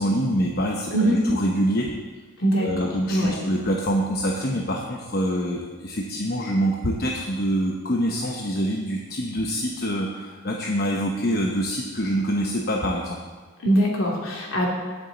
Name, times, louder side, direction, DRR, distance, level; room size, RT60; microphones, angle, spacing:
voice 1, 0.0-1.9 2.6-13.2, equal, 45° left, 0 dB, 0.9 m, -25 dB
voice 2, 2.4-3.4 13.6-14.7, right 1 dB, 65° left, -3 dB, 2.8 m, -22 dB
18.5 x 7.1 x 4.1 m, 1.4 s
head